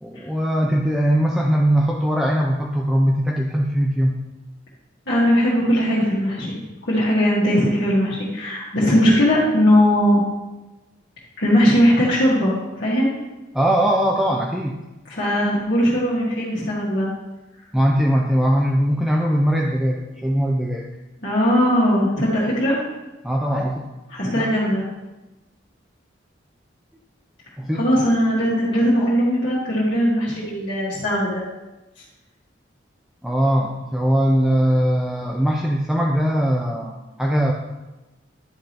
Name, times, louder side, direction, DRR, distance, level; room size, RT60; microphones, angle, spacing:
voice 1, 0.0-4.2 13.5-14.8 17.7-20.9 23.2-23.9 24.3-24.5 27.6-27.9 33.2-37.5, equal, ahead, -1 dB, 0.4 m, -20 dB
voice 2, 5.1-10.2 11.4-13.1 15.1-17.1 21.2-22.8 24.1-24.8 27.7-31.4, equal, 65° left, -9 dB, 1.8 m, -19 dB
10.5 x 4.9 x 2.9 m, 1.0 s
head